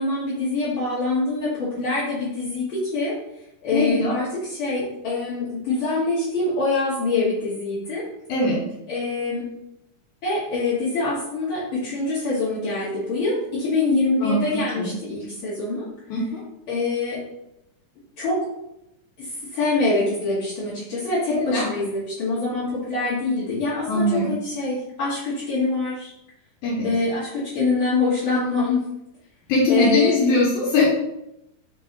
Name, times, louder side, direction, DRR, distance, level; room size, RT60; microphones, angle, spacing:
voice 1, 0.0-3.1 3.6-8.0 8.9-9.4 10.2-15.9 16.7-17.2 18.2-18.4 19.2-26.1 26.8-28.8 29.7-30.2, left 3 dB, 60° left, -9 dB, 1.4 m, -25 dB
voice 2, 3.7-4.2 8.3-8.6 14.2-14.4 14.8-14.9 16.1-16.4 21.3-21.7 23.9-24.3 26.6-26.9 29.5-30.8, left 2 dB, 75° left, -5 dB, 2.2 m, -21 dB
5.1 x 2.7 x 3.8 m, 0.85 s
omnidirectional pair, 3.6 m